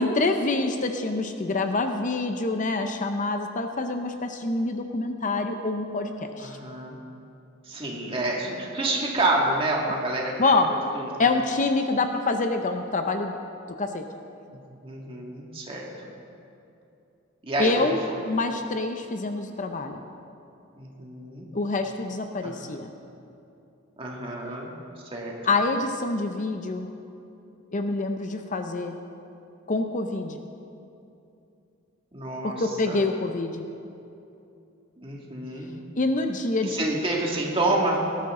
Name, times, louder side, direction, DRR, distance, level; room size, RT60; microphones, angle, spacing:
voice 1, 0.0-6.6 10.4-10.8 11.2-13.4 13.8-14.0 17.6-18.0 18.3-20.0 21.5-22.9 25.4-26.9 27.7-29.0 29.7-30.4 32.4-33.6 36.0-36.8, left 3 dB, 40° left, 6 dB, 0.6 m, -26 dB
voice 2, 6.4-7.0 7.7-10.5 10.9-11.1 14.5-15.9 17.5-18.2 20.8-21.5 22.4-22.6 24.0-24.7 25.1-25.3 32.1-32.6 32.8-33.0 35.0-35.7 36.6-38.0, right 2 dB, 25° right, -2 dB, 2.1 m, -28 dB
19.0 x 12.5 x 3.8 m, 2.7 s
head